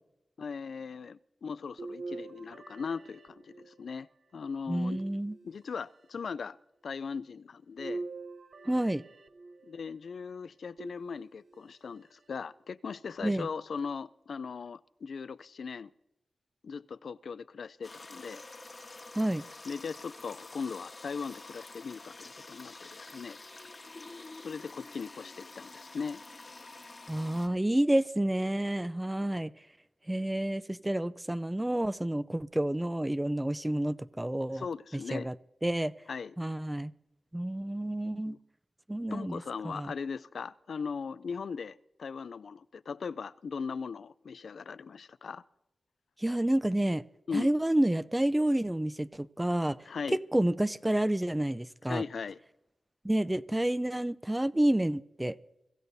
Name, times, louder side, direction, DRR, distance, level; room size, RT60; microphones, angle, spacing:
voice 1, 0.4-4.1 4.3-5.0 5.4-6.6 6.8-8.0 9.6-15.9 16.6-18.4 19.7-23.4 24.4-26.2 34.5-35.3 36.1-36.3 38.3-38.4 39.1-45.4 47.3-47.5 49.9-50.2 51.9-52.4, left 5 dB, 80° left, 0.4 m, -39 dB
sound 1, 1.8-4.0 4.8-5.8 7.8-9.8 10.8-11.6 12.3-12.4 13.8-13.9, right 3 dB, 75° right, 0.7 m, -44 dB
voice 2, 4.7-5.4 8.7-9.0 13.2-13.5 19.2-19.4 27.1-29.5 30.1-34.7 35.1-35.3 35.6-35.9 36.4-36.9 37.3-38.4 38.9-39.9 46.2-47.0 47.3-49.8 50.1-52.0 53.0-55.4, right 1 dB, 10° right, 0.4 m, -29 dB
sound 2, 17.8-27.5, left 2 dB, 40° left, 1.3 m, -48 dB
24.5 x 15.5 x 2.7 m
wide cardioid pair, 85°, 0 cm